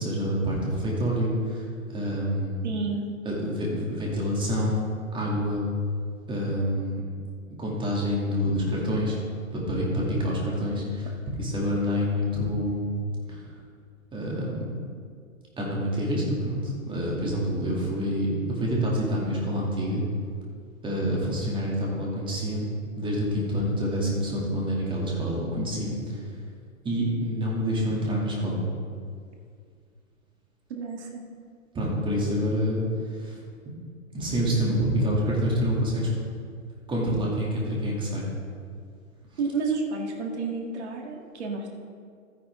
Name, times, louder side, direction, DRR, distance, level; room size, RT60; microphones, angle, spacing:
voice 1, 0.0-2.7 3.2-4.8 5.1-5.6 6.3-7.0 7.6-9.2 9.5-11.1 11.4-12.9 13.3-13.4 14.1-14.9 15.6-20.0 20.8-22.7 23.0-26.3 26.8-28.6 31.7-33.4 34.1-36.1 36.9-38.2, equal, 10° right, -4 dB, 2.6 m, -27 dB
voice 2, 2.6-3.0 30.7-31.2 39.4-41.7, right 4 dB, 55° right, 1 dB, 1.9 m, -30 dB
13.0 x 10.0 x 3.7 m, 2.1 s
figure-of-eight pair, 120°, 41 cm